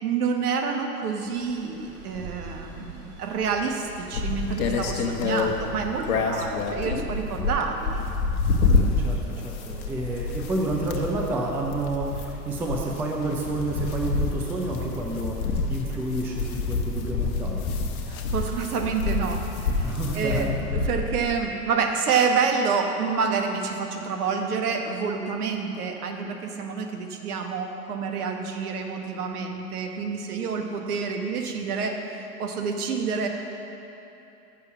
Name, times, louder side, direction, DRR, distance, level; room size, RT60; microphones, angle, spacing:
voice 1, 0.0-8.0 18.1-33.3, right 5 dB, 70° right, 4 dB, 1.2 m, -28 dB
Stream, 1.2-6.9, right 4 dB, 30° right, 1.7 m, -42 dB
sound 1, 4.1-21.4, left 4 dB, 65° left, 1.0 m, -28 dB
voice 2, 8.6-17.7 19.8-20.5, right 2 dB, 5° right, -1 dB, 0.4 m, -30 dB
6.7 x 6.6 x 7.1 m, 2.9 s
hypercardioid pair, 110°, 47 cm